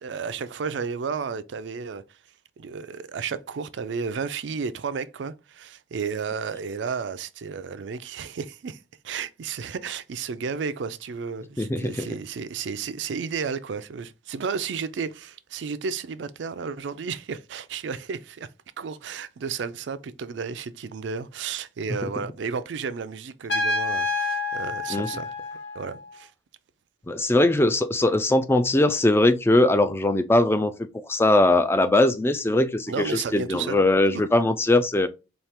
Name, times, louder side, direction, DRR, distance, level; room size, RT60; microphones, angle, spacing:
voice 1, 0.0-2.2 2.6-18.5 18.8-25.3 25.7-26.3 32.9-33.8 34.1-34.2, right 5 dB, 75° right, 0.4 m, -32 dB
voice 2, 11.6-12.1 22.0-22.1 24.9-25.1 27.1-35.1, left 2 dB, 15° left, 0.3 m, -21 dB
Trumpet, 23.5-26.1, left 2 dB, 65° left, 0.9 m, -28 dB
4.3 x 2.4 x 3.4 m
head